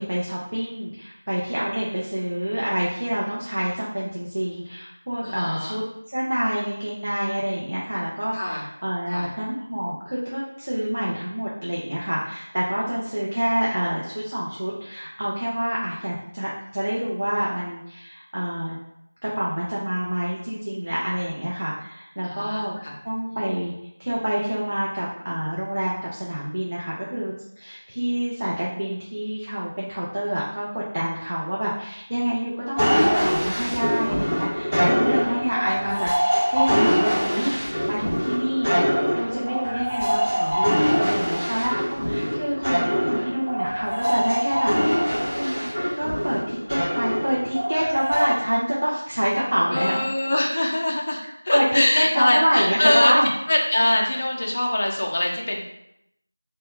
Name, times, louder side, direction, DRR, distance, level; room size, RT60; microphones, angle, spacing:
voice 1, 0.0-18.8 19.2-22.7 23.0-23.7 24.0-45.7 46.0-50.0 51.5-53.3, equal, 45° right, -5 dB, 0.4 m, -27 dB
voice 2, 5.2-5.8 8.3-8.6 9.1-9.3 22.2-22.9 35.0-36.0 49.7-53.1 53.5-55.6, left 1 dB, 25° left, -1 dB, 0.3 m, -24 dB
sound 1, 32.8-48.3, equal, 15° right, 1.1 m, -23 dB
3.5 x 2.1 x 2.3 m, 0.80 s
figure-of-eight pair, 175°, 0 cm